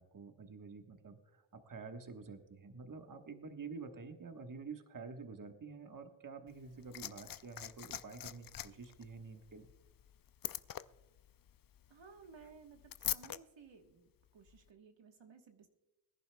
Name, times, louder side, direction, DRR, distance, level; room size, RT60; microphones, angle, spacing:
voice 1, 0.0-9.7, right 4 dB, 40° right, 5 dB, 1.3 m, -49 dB
Liquid, 6.5-13.4 14.5-14.6, left 10 dB, 50° left, 0.5 m, -44 dB
voice 2, 11.9-15.7, right 5 dB, 65° right, 4 dB, 1.4 m, -58 dB
22.0 x 11.0 x 2.2 m, 1.0 s
cardioid pair, 75°, 47 cm